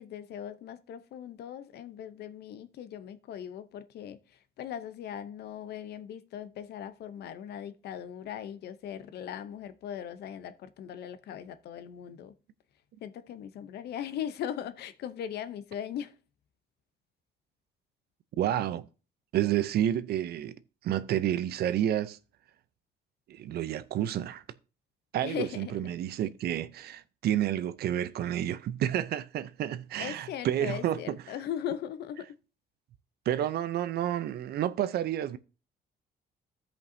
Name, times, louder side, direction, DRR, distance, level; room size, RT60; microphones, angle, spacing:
voice 1, 0.0-12.3 13.0-16.1 25.2-25.9 30.0-32.3, left 9 dB, 70° left, 0.7 m, -39 dB
voice 2, 18.4-18.9 19.3-20.6 20.8-22.2 23.3-24.4 25.1-31.2 33.3-35.4, right 11 dB, 70° right, 0.6 m, -30 dB
15.5 x 5.3 x 2.7 m
cardioid pair, 120°, 17 cm